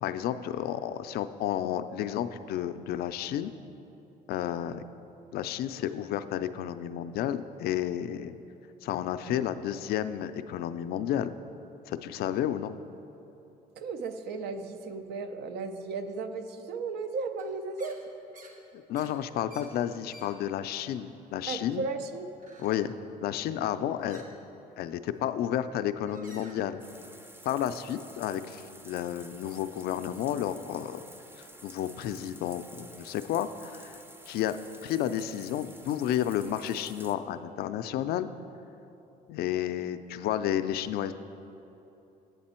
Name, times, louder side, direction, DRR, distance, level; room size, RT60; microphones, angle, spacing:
voice 1, 0.0-3.5 4.3-4.8 5.3-8.4 8.8-11.3 11.9-12.8 18.9-21.9 22.6-22.9 23.2-24.2 24.8-26.8 27.5-31.0 31.4-34.0 34.3-34.6 34.8-38.3 39.3-41.1, left 11 dB, 65° left, 11 dB, 0.4 m, -31 dB
voice 2, 13.8-18.0 21.5-22.3, right 4 dB, 75° right, 8 dB, 0.5 m, -35 dB
sound 1, 17.4-17.5 17.8-18.0 18.3-18.6 18.9-20.3 20.7-21.1 21.4-21.9 22.3-22.9 24.1-24.3 25.2-25.4 26.0-26.6, right 2 dB, 50° right, 1.1 m, -53 dB
sound 2, 26.8-37.1, right 1 dB, 15° right, 0.5 m, -51 dB
8.0 x 6.8 x 4.3 m, 3.0 s
cardioid pair, 110°, 17 cm